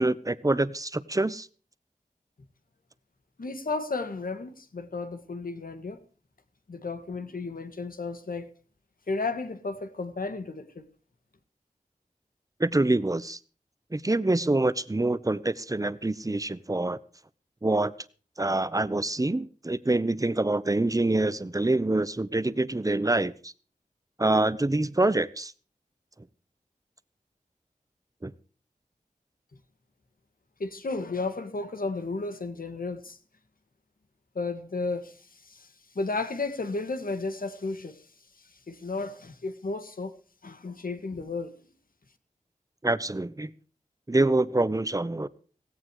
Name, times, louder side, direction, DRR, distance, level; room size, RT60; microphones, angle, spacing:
voice 1, 0.0-1.5 12.6-13.4 13.9-17.0 17.6-17.9 18.4-23.5 24.2-25.5 28.2-28.3 42.8-43.5 44.1-45.3, right 2 dB, 25° right, 1.0 m, -26 dB
voice 2, 3.4-6.0 6.7-8.5 9.1-10.8 30.6-33.2 34.3-38.1 38.4-40.2 40.4-41.6, left 3 dB, 80° left, 2.1 m, -33 dB
17.0 x 16.5 x 3.2 m
wide cardioid pair, 70°, 15 cm